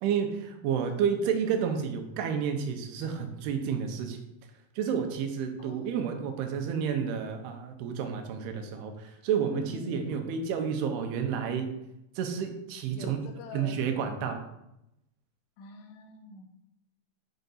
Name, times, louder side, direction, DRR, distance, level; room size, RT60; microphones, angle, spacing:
voice 1, 0.0-4.2 4.8-11.7 12.2-13.2 13.5-14.4, right 7 dB, 85° right, 5 dB, 2.7 m, -30 dB
voice 2, 5.6-6.3 9.4-10.1 12.9-13.8 15.6-16.4, left 4 dB, 85° left, 5 dB, 3.0 m, -45 dB
7.8 x 4.6 x 4.0 m, 0.85 s
omnidirectional pair, 4.7 m